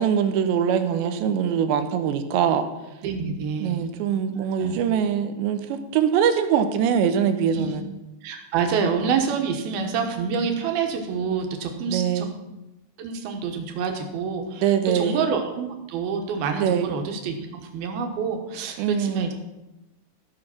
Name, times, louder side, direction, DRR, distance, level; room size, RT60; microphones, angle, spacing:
voice 1, 0.0-2.7 3.6-7.9 11.9-12.3 14.6-15.2 16.6-16.9 18.8-19.3, right 8 dB, 90° right, 9 dB, 3.1 m, -23 dB
voice 2, 3.0-3.8 4.4-4.8 7.5-7.7 8.2-12.3 13.0-19.3, right 6 dB, 70° right, 4 dB, 2.9 m, -27 dB
14.5 x 6.4 x 5.9 m, 0.99 s
omnidirectional pair, 4.9 m